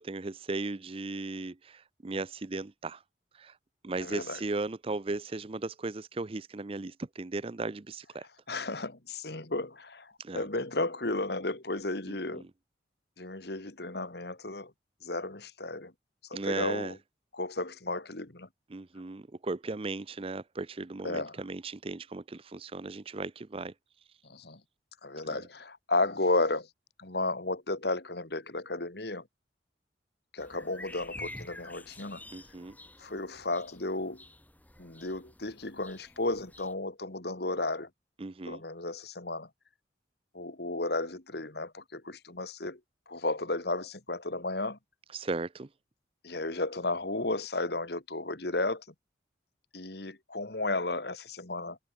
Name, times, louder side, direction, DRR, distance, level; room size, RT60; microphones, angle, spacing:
voice 1, 0.0-3.0 3.3-3.6 3.8-8.3 10.2-10.5 12.1-12.5 16.3-17.0 18.7-23.7 32.3-32.8 38.2-38.6 45.1-45.7, right 3 dB, 30° right, 0.5 m, -36 dB
voice 2, 4.0-4.4 8.5-12.4 13.2-14.7 15.0-15.9 16.3-16.9 17.3-18.5 21.0-21.4 24.3-24.6 25.0-26.7 27.0-29.2 30.3-32.2 33.0-34.2 34.8-37.9 38.4-39.5 40.3-42.8 43.1-44.8 46.2-48.8 49.7-51.8, left 2 dB, 55° left, 2.0 m, -33 dB
sound 1, 30.4-36.7, left 1 dB, 10° left, 5.8 m, -49 dB
head